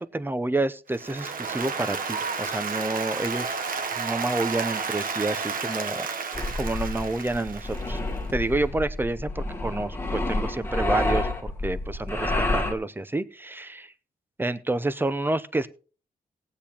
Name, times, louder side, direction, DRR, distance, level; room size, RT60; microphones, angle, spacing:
voice 1, 0.0-3.6 4.0-6.1 6.5-8.0 8.3-13.9 14.4-15.7, right 2 dB, 15° right, 13 dB, 0.6 m, -29 dB
Applause, 0.9-8.1, right 5 dB, 60° right, 0.9 m, -31 dB
Irregular Mechanical Breathing Drone, 6.3-12.7, left 2 dB, 15° left, 1.4 m, -29 dB
18.0 x 8.5 x 2.9 m, 0.38 s
wide cardioid pair, 140°, 16 cm